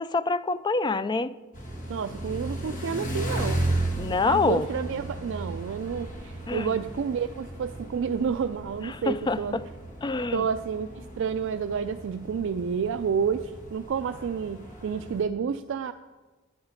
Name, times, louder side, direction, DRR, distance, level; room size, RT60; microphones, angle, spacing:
voice 1, 0.0-1.4 4.0-4.7 6.5-6.7 8.8-9.7 10.0-10.5, left 3 dB, 20° left, 15 dB, 0.3 m, -26 dB
sound 1, 1.5-15.2, right 1 dB, 40° left, 1.7 m, -35 dB
voice 2, 1.9-3.6 4.2-9.6 10.3-15.9, right 6 dB, 65° right, 10 dB, 0.4 m, -30 dB
11.5 x 9.6 x 5.0 m, 1.3 s
head